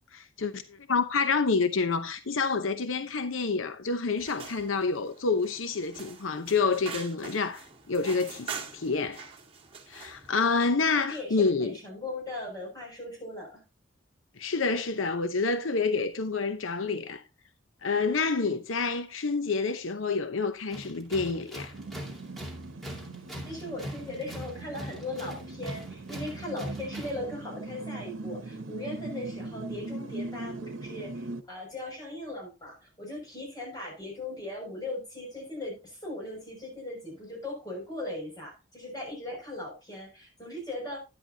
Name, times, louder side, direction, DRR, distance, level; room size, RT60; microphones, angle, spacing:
voice 1, 0.1-9.3 9.9-11.7 14.4-17.2 17.8-21.7, left 4 dB, 90° left, 0.8 m, -28 dB
sound 1, 4.2-10.3, right 6 dB, 30° right, 2.0 m, -44 dB
voice 2, 10.9-13.6 23.4-41.0, left 1 dB, 20° left, 6.4 m, -38 dB
Tools, 20.7-27.3, equal, ahead, 2.4 m, -41 dB
sound 2, 21.7-31.4, right 2 dB, 85° right, 1.0 m, -40 dB
11.0 x 10.5 x 2.8 m
head